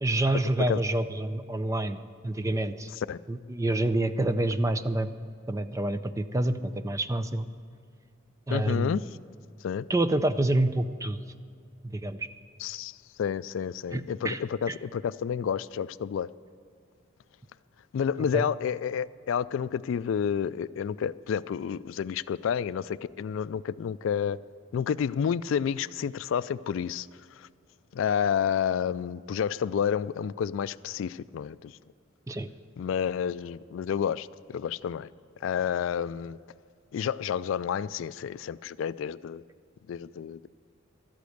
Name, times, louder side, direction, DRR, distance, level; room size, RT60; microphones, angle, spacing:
voice 1, 0.0-2.0 2.2-2.9 3.3-5.1 5.5-7.5 8.5-9.0 9.9-11.2 11.8-12.3 13.9-14.4 14.7-14.8 18.3-18.5 32.3-32.5, right 1 dB, 15° right, 11 dB, 0.4 m, -27 dB
voice 2, 8.5-9.0 9.6-9.9 12.6-16.3 17.9-24.4 24.7-27.1 27.4-27.5 27.9-31.8 32.8-35.1 35.4-36.4 36.9-39.4 39.9-40.5, left 7 dB, 70° left, 17 dB, 0.3 m, -30 dB
13.0 x 8.4 x 7.9 m, 2.3 s
head